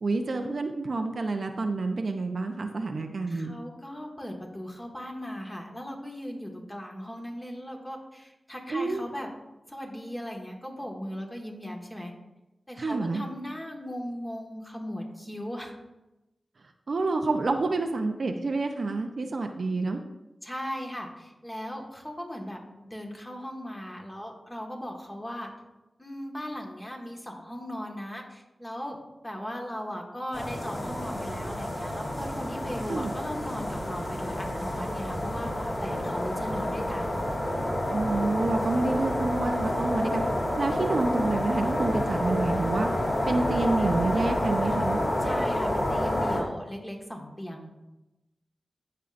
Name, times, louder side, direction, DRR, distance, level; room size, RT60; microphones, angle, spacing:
voice 1, 0.0-3.5 8.7-9.0 12.8-13.2 16.9-20.0 32.9-33.1 37.9-40.2 40.6-42.9 43.3-45.0, right 3 dB, 65° right, 5 dB, 0.7 m, -28 dB
voice 2, 3.3-9.3 9.7-12.1 12.7-15.7 20.4-25.5 26.0-29.0 29.2-37.2 45.2-47.7, equal, 15° left, 0 dB, 1.6 m, -38 dB
sound 1, 30.3-46.4, left 1 dB, 50° left, 3.1 m, -29 dB
15.5 x 5.6 x 2.6 m, 0.98 s
wide cardioid pair, 70°, 0 cm